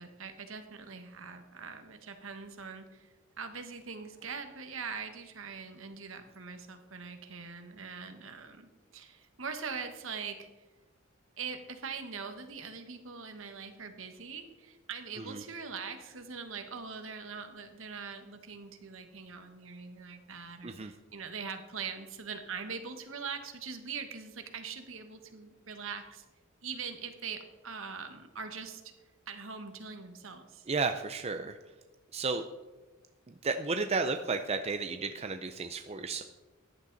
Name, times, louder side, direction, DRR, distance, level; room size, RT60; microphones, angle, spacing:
voice 1, 0.0-10.5 11.4-26.2 26.6-28.8 29.3-30.6, right 5 dB, 65° right, 7 dB, 1.4 m, -42 dB
voice 2, 30.7-31.6 32.1-32.4 33.3-36.2, right 4 dB, 30° right, 6 dB, 0.5 m, -33 dB
14.5 x 10.0 x 4.0 m, 1.2 s
head